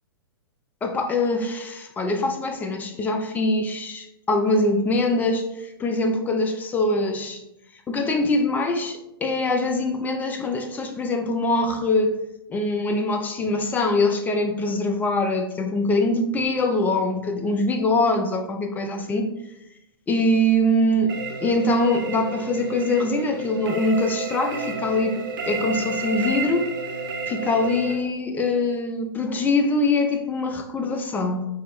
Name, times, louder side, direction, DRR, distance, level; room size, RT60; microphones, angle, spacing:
voice 1, 0.8-5.5 5.8-7.4 7.9-12.2 12.5-19.3 20.1-25.2 25.5-26.6 27.3-31.5, left 2 dB, 15° left, 4 dB, 0.5 m, -23 dB
sound 1, 21.1-27.9, right 4 dB, 55° right, 0.6 m, -31 dB
4.7 x 2.9 x 3.1 m, 0.87 s
figure-of-eight pair, 115°, 13 cm